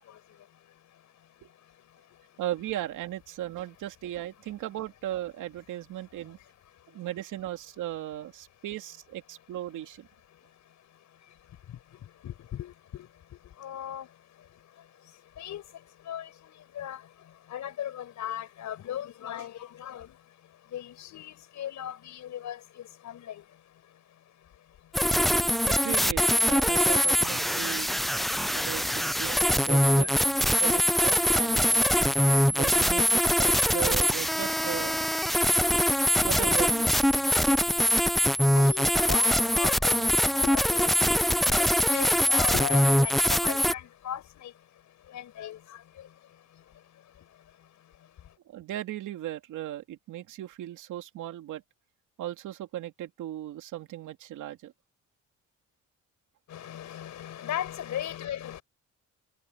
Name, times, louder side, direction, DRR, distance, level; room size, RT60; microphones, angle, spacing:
voice 1, 2.4-6.4 6.9-10.1 25.7-27.9 28.5-30.1 30.6-31.9 32.5-35.0 36.2-36.9 48.5-51.6 52.2-54.7, right 13 dB, 85° right, 2.6 m, -37 dB
voice 2, 12.2-13.1 13.6-14.1 15.4-15.6 16.1-16.3 16.8-17.0 17.5-20.1 20.7-22.6 23.0-23.4 30.0-30.1 38.5-40.9 41.4-44.5 45.1-45.6 56.5-58.6, left 11 dB, 70° left, 6.1 m, -37 dB
sound 1, 24.9-43.7, equal, ahead, 0.3 m, -23 dB
cardioid pair, 90°, 30 cm